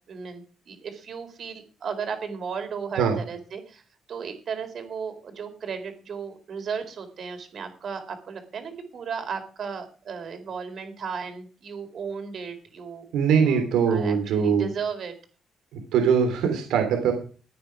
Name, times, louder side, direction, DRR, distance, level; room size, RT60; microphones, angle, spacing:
voice 1, 0.1-3.8 4.1-13.1 13.4-15.1, right 6 dB, 55° right, 7 dB, 4.3 m, -35 dB
voice 2, 13.1-14.7 15.7-17.1, right 6 dB, 90° right, 5 dB, 3.3 m, -22 dB
15.0 x 9.6 x 6.1 m, 0.39 s
cardioid pair, 90°, 0 cm